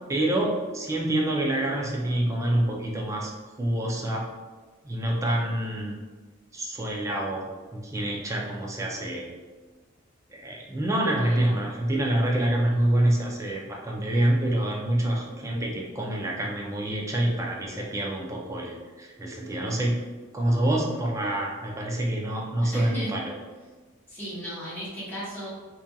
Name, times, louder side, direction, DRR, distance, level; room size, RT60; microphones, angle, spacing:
voice 1, 0.1-3.3 3.6-4.3 4.8-6.0 6.5-7.4 7.7-9.3 10.3-20.0 20.3-23.3, right 1 dB, 15° right, -2 dB, 0.4 m, -26 dB
voice 2, 11.2-11.7 22.6-23.1 24.1-25.5, right 1 dB, 10° left, -10 dB, 0.9 m, -36 dB
2.7 x 2.5 x 2.2 m, 1.3 s
head